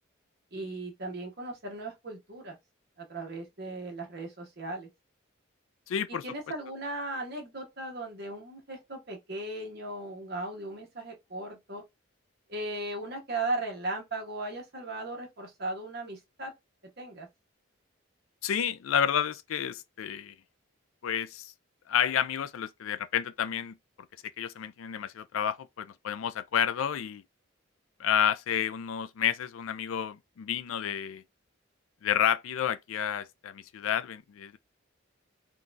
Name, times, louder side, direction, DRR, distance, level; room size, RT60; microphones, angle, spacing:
voice 1, 0.5-2.6 3.0-4.9 6.1-11.8 12.5-16.5 17.0-17.3, right 2 dB, 50° right, 1.1 m, -37 dB
voice 2, 5.9-6.2 18.4-20.3 21.0-21.5 21.9-23.8 24.4-27.2 28.0-31.2 32.0-34.6, left 9 dB, 80° left, 0.4 m, -30 dB
3.8 x 2.3 x 2.5 m
head